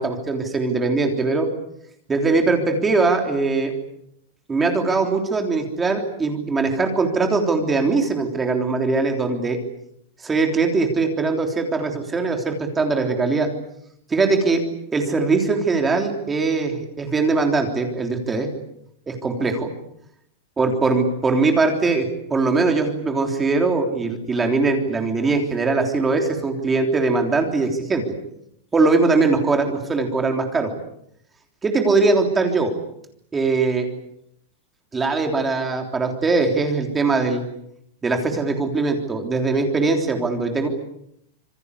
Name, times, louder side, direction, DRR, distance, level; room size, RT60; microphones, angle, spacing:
voice 1, 0.0-1.5 2.1-3.7 4.5-9.6 10.2-13.5 14.1-14.6 14.9-18.5 19.1-19.7 20.6-28.0 28.7-30.7 31.6-32.7 33.3-33.9 34.9-37.4 38.0-40.7, right 3 dB, 10° right, 4 dB, 3.4 m, -21 dB
27.0 x 23.5 x 8.3 m, 0.75 s
supercardioid pair, 170°, 0 cm